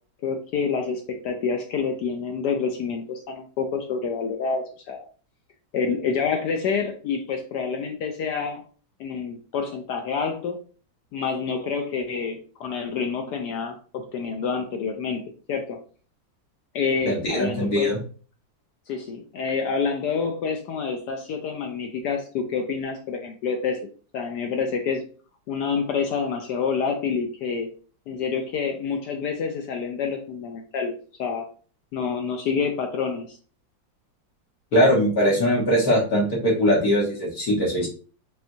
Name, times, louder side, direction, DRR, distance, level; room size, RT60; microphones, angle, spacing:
voice 1, 0.2-5.1 5.7-8.6 9.0-10.6 11.1-15.8 16.7-17.9 18.9-23.9 24.1-25.0 25.5-27.7 28.1-31.5 31.9-33.4, left 5 dB, 70° left, 4 dB, 1.1 m, -28 dB
voice 2, 17.1-18.0 34.7-37.9, equal, 55° left, -4 dB, 1.6 m, -21 dB
4.4 x 3.4 x 2.6 m, 0.40 s
omnidirectional pair, 2.0 m